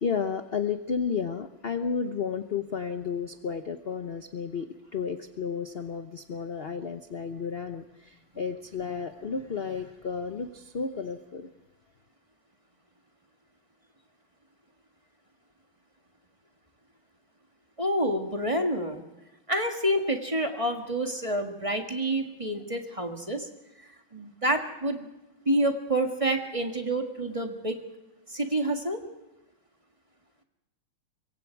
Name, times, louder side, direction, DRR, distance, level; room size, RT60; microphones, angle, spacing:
voice 1, 0.0-11.5, left 6 dB, 45° left, 8 dB, 0.8 m, -32 dB
voice 2, 17.8-19.0 19.5-23.5 24.1-25.1 25.5-27.8 28.3-29.0, right 1 dB, 15° right, 4 dB, 1.7 m, -28 dB
25.0 x 23.0 x 4.7 m, 0.97 s
omnidirectional pair, 2.2 m